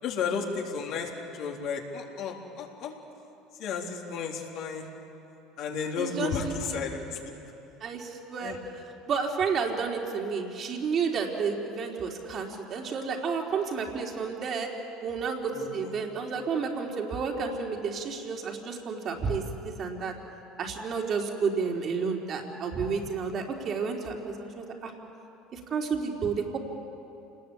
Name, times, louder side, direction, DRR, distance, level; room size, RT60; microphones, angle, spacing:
voice 1, 0.0-2.9 3.6-4.9 5.6-7.3 8.4-8.6 15.5-15.9, left 5 dB, 60° left, 0 dB, 4.0 m, -33 dB
voice 2, 6.0-6.8 7.8-8.6 9.1-14.7 15.0-20.1 20.6-24.9 25.5-26.6, right 5 dB, 45° right, 1 dB, 3.9 m, -31 dB
27.5 x 20.0 x 8.6 m, 2.8 s
supercardioid pair, 85°, 0 cm